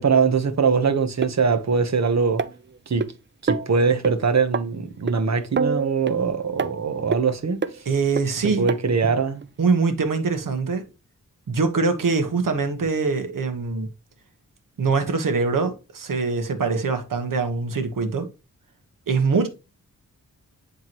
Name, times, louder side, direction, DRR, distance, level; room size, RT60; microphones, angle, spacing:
voice 1, 0.0-2.4 2.9-3.1 3.4-7.6 8.4-9.4, right 5 dB, 55° right, 1.2 m, -22 dB
sound 1, 1.2-1.3 2.4-3.1 3.5-3.7 4.0-4.1 4.5-4.6 5.1-5.2 5.6-6.2 6.6-6.7 7.1-7.2 7.6-7.8 8.2-8.3 8.7-8.8 9.4-9.5, right 5 dB, 35° right, 0.6 m, -25 dB
voice 2, 7.8-8.7 9.6-10.8 11.5-13.9 14.8-18.3 19.1-19.5, right 4 dB, 75° right, 1.6 m, -23 dB
11.0 x 3.7 x 3.1 m
cardioid pair, 50°, 33 cm